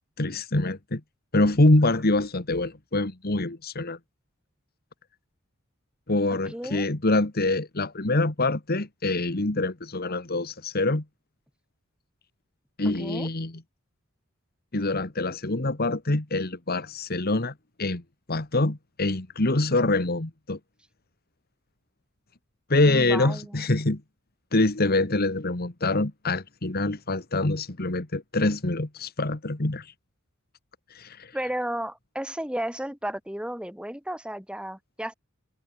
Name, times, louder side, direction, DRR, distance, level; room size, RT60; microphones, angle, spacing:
voice 1, 0.2-1.0 1.3-4.0 6.1-11.0 12.8-13.5 14.7-18.0 18.3-20.6 22.7-24.0 24.5-29.9 30.9-31.3, left 2 dB, 50° left, 1.8 m, -25 dB
voice 2, 6.5-6.8 12.8-13.3 22.8-23.6 31.3-35.1, right 1 dB, 5° right, 4.7 m, -33 dB
head